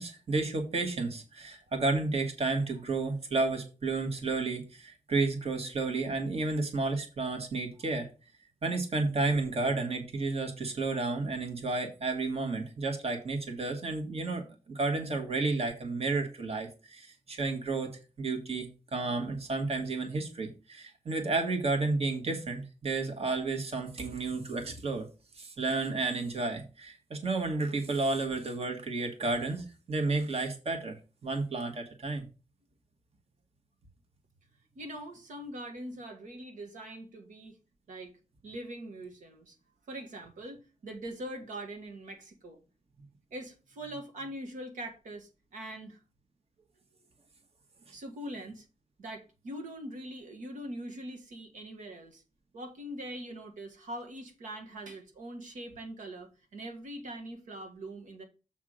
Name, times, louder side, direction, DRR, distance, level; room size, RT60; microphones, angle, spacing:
voice 1, 0.0-8.1 8.6-25.1 25.4-31.0 31.2-32.2, right 3 dB, 55° right, 4 dB, 1.7 m, -32 dB
voice 2, 34.7-37.6 37.9-38.1 38.4-39.5 39.9-42.6 43.3-46.0 47.9-48.6 49.0-52.2 52.5-58.2, right 1 dB, 90° right, 4 dB, 1.7 m, -42 dB
7.4 x 3.6 x 6.3 m, 0.31 s
cardioid pair, 85°, 13 cm